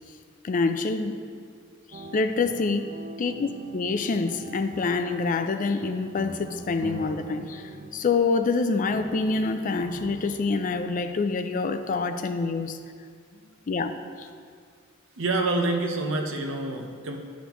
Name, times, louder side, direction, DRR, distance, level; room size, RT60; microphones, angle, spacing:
voice 1, 0.4-1.1 1.9-2.9 3.2-12.8 13.7-13.9 14.2-14.3, left 4 dB, 40° left, 8 dB, 0.4 m, -26 dB
sound 1, 1.9-7.9, right 2 dB, 40° right, 0.4 m, -44 dB
sound 2, 6.2-8.5 8.9-11.1, equal, 20° right, 0.9 m, -42 dB
voice 2, 15.2-17.2, right 2 dB, 70° right, 3 dB, 0.8 m, -27 dB
11.0 x 5.1 x 3.0 m, 2.1 s
head